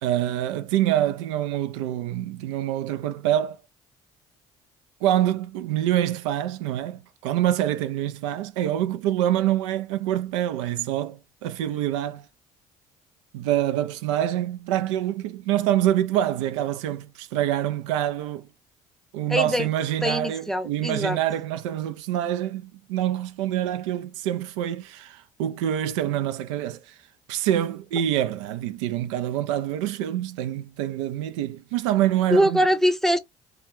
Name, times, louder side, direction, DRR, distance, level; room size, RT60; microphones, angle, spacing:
voice 1, 0.0-3.6 5.0-12.3 13.3-18.5 19.1-27.0 27.3-32.6, right 12 dB, 90° right, 0.4 m, -26 dB
voice 2, 19.3-19.7 20.0-21.2 32.3-33.2, equal, ahead, 0.6 m, -22 dB
2.8 x 2.2 x 3.2 m
hypercardioid pair, 60°, 15 cm